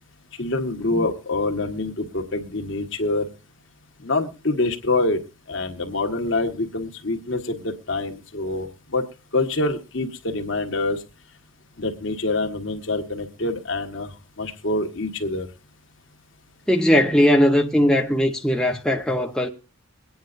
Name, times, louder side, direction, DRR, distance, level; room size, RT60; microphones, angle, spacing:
voice 1, 0.4-3.2 4.0-5.2 5.5-9.0 9.3-11.0 11.8-14.1 14.4-15.5, left 2 dB, 65° left, 1.5 m, -25 dB
voice 2, 16.7-19.5, equal, 5° left, 0.7 m, -19 dB
22.5 x 9.4 x 2.5 m
head